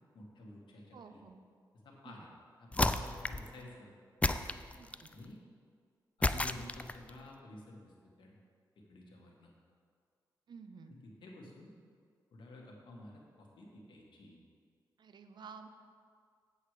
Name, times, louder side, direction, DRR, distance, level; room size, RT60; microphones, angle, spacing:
voice 1, 0.1-1.2 1.8-2.3 2.6-3.9 5.1-5.4 6.2-8.4 8.9-9.5 10.9-11.7 12.3-14.4, left 1 dB, 80° left, -1 dB, 1.8 m, -51 dB
voice 2, 0.9-1.4 2.0-2.1 4.7-5.1 10.5-11.0 15.0-15.7, right 5 dB, 65° right, 7 dB, 0.7 m, -52 dB
sound 1, 2.7-3.5 4.2-5.1 6.2-7.1, left 2 dB, 15° left, 0.4 m, -32 dB
8.1 x 8.0 x 4.9 m, 2.2 s
cardioid pair, 80°, 8 cm